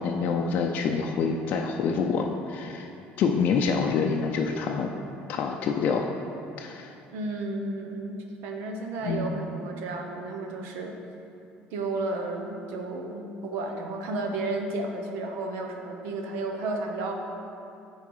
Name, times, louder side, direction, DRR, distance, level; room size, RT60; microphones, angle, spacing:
voice 1, 0.0-2.9 3.2-4.9 5.3-6.1 6.6-6.9 9.0-9.3, left 5 dB, 50° left, 1 dB, 0.4 m, -26 dB
voice 2, 7.1-10.9 11.7-17.1, right 2 dB, 85° right, 2 dB, 1.0 m, -32 dB
9.0 x 4.7 x 4.8 m, 2.7 s
cardioid pair, 155°, 4 cm